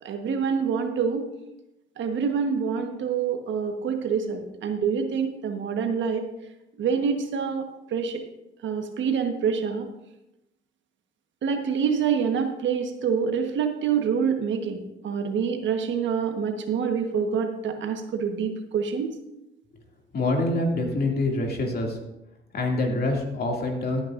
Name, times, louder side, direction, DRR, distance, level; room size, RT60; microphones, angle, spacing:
voice 1, 0.0-1.2 2.0-6.2 6.8-8.2 8.6-9.9 11.4-19.1, right 6 dB, 70° right, 5 dB, 1.3 m, -26 dB
voice 2, 20.1-22.0 22.5-24.0, left 2 dB, 50° left, 1 dB, 2.5 m, -25 dB
15.5 x 9.1 x 2.6 m, 0.91 s
cardioid pair, 90°, 20 cm